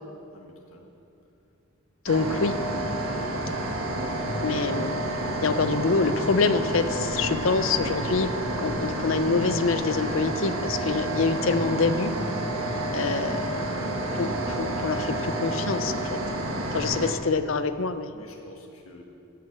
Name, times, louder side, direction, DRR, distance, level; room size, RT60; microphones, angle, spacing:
voice 1, 0.3-0.9 18.1-19.0, left 1 dB, 85° left, 0 dB, 1.6 m, -49 dB
voice 2, 2.0-2.5 4.4-5.1 5.4-8.3 8.6-12.1 12.9-13.7 14.1-16.2 16.7-18.1, left 4 dB, 70° left, 11 dB, 0.6 m, -26 dB
sound 1, 2.1-17.1, right 1 dB, 85° right, 1.6 m, -29 dB
15.5 x 7.7 x 7.4 m, 2.7 s
head